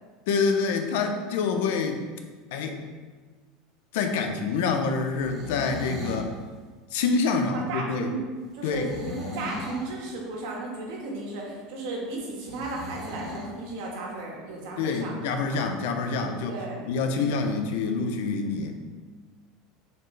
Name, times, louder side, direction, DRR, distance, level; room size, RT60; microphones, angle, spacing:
voice 1, 0.3-2.0 2.5-2.8 3.9-6.3 6.9-8.1 8.6-8.9 14.8-16.6 16.9-18.7, left 4 dB, 75° left, 5 dB, 0.7 m, -26 dB
sound 1, 5.1-6.3 8.7-9.9 12.4-13.5, left 1 dB, 30° right, 1.4 m, -37 dB
voice 2, 7.5-8.3 8.5-15.2 15.5-15.6 16.5-16.9, right 2 dB, 65° right, -2 dB, 1.6 m, -35 dB
6.5 x 4.4 x 3.3 m, 1.4 s
supercardioid pair, 155°, 0 cm